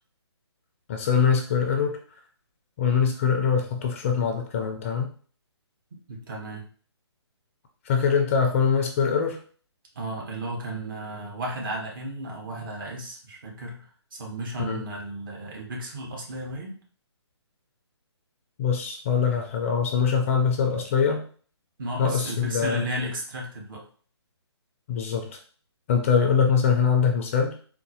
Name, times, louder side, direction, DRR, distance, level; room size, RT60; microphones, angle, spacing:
voice 1, 0.9-2.0 2.8-5.1 7.9-9.4 14.7-14.8 18.6-21.2 22.0-22.8 24.9-25.4 25.9-27.5, left 6 dB, 30° left, 3 dB, 0.4 m, -23 dB
voice 2, 6.1-6.6 9.9-16.8 21.8-23.9, right 1 dB, 50° right, -1 dB, 1.2 m, -34 dB
3.9 x 2.1 x 2.9 m, 0.44 s
figure-of-eight pair, 145°, 15 cm